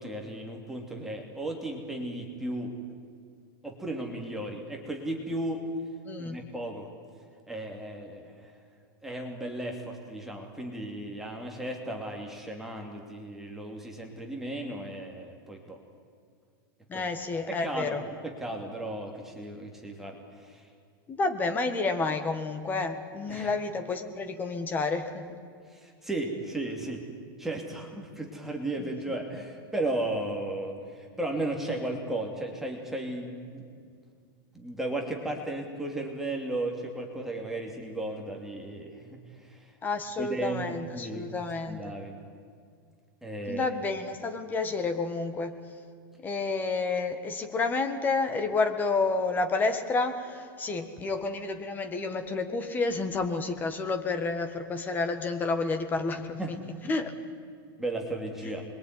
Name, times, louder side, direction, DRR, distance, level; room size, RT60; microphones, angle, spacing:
voice 1, 0.0-2.7 3.6-5.6 6.2-6.9 7.5-8.5 9.0-15.8 16.9-17.1 17.5-18.0 18.2-20.7 23.3-23.5 25.7-27.0 27.4-33.7 34.5-39.7 40.2-42.2 43.2-43.7 56.4-56.9 57.8-58.6, right 1 dB, 5° right, 0 dB, 2.6 m, -35 dB
voice 2, 6.0-6.4 16.9-18.0 21.1-25.4 28.8-28.9 39.8-41.8 43.5-45.6 46.2-56.6 56.8-57.1 58.4-58.5, left 3 dB, 15° left, 7 dB, 1.8 m, -30 dB
26.5 x 22.5 x 9.7 m, 2.2 s
supercardioid pair, 165°, 12 cm